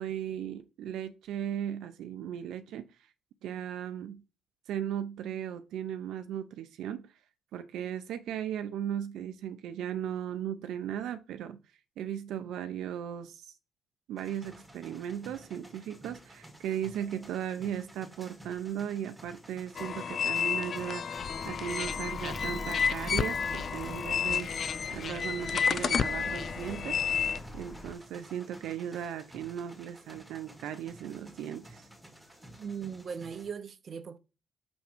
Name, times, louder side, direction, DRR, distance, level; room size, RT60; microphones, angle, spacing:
voice 1, 0.0-2.9 3.4-4.2 4.7-7.0 7.5-11.6 12.0-13.5 14.1-24.5 24.9-27.0 27.5-31.8, right 9 dB, 80° right, 0.6 m, -37 dB
sound 1, 14.2-33.5, right 1 dB, 5° right, 2.0 m, -52 dB
sound 2, 19.8-27.4, left 7 dB, 50° left, 0.3 m, -31 dB
Alarm, 21.2-28.0, left 1 dB, 20° left, 0.9 m, -43 dB
voice 2, 32.6-34.2, right 6 dB, 50° right, 0.7 m, -39 dB
6.2 x 3.5 x 6.0 m
cardioid pair, 90°, 0 cm